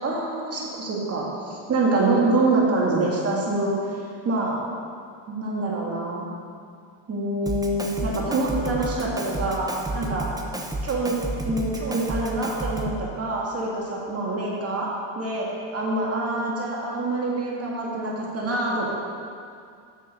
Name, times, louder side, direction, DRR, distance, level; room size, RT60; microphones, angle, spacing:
voice 1, 0.0-3.8 4.2-4.6 5.3-6.3 7.1-9.7 9.9-10.3 10.8-11.1 11.5-15.5 15.7-18.9, right 2 dB, 30° right, -4 dB, 1.9 m, -25 dB
Drum kit, 7.5-13.1, right 2 dB, 10° right, 0.7 m, -31 dB
7.4 x 6.9 x 6.6 m, 2.3 s
cardioid pair, 110°, 46 cm